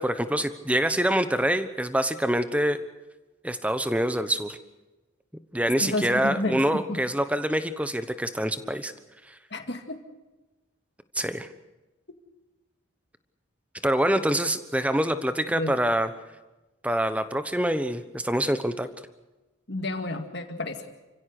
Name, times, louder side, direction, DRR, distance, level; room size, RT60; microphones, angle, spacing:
voice 1, 0.0-2.8 3.4-4.6 5.5-8.9 9.3-9.4 11.1-11.5 13.8-16.1 16.8-18.9, right 1 dB, 5° right, 11 dB, 1.0 m, -25 dB
voice 2, 5.8-7.0 9.5-10.0 15.5-15.7 19.7-20.9, left 2 dB, 55° left, 6 dB, 2.3 m, -31 dB
29.5 x 16.0 x 6.7 m, 1.1 s
head